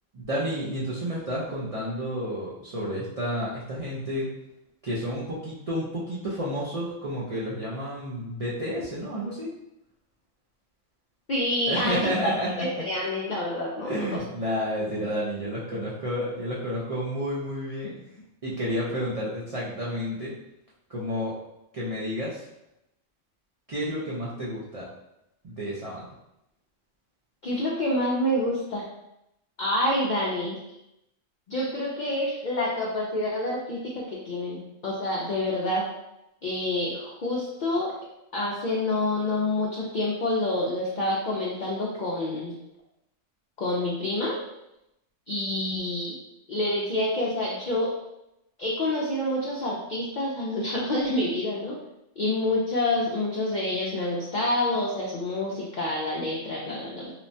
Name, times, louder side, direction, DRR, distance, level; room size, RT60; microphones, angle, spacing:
voice 1, 0.1-4.3 4.8-9.5 11.7-12.8 13.8-17.9 18.4-20.3 20.9-21.3 21.7-22.4 23.7-24.9 25.4-26.1, equal, 65° right, -7 dB, 0.3 m, -30 dB
voice 2, 11.3-12.0 12.6-14.2 27.4-28.8 29.6-30.6 31.5-35.8 36.4-37.9 38.3-42.6 43.6-44.4 45.3-46.1 46.5-47.9 48.6-51.8 52.2-57.1, left 1 dB, 70° left, -4 dB, 0.4 m, -27 dB
3.0 x 2.1 x 2.6 m, 0.86 s
omnidirectional pair, 1.3 m